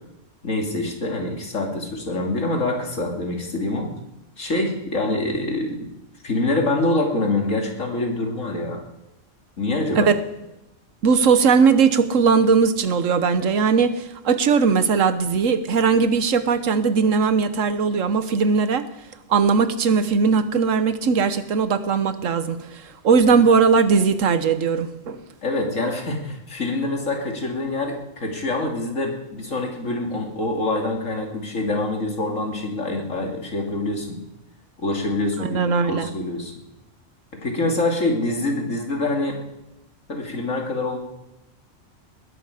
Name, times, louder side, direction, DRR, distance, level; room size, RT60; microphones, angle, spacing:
voice 1, 0.4-3.9 4.4-5.9 6.2-8.8 9.6-10.1 25.4-34.2 34.8-36.5 37.3-39.4 40.1-41.0, left 2 dB, 90° left, 1 dB, 3.0 m, -25 dB
voice 2, 11.0-18.9 19.3-25.2 35.4-36.1, right 5 dB, 85° right, 12 dB, 1.4 m, -19 dB
20.5 x 11.5 x 5.0 m, 0.90 s
omnidirectional pair, 1.3 m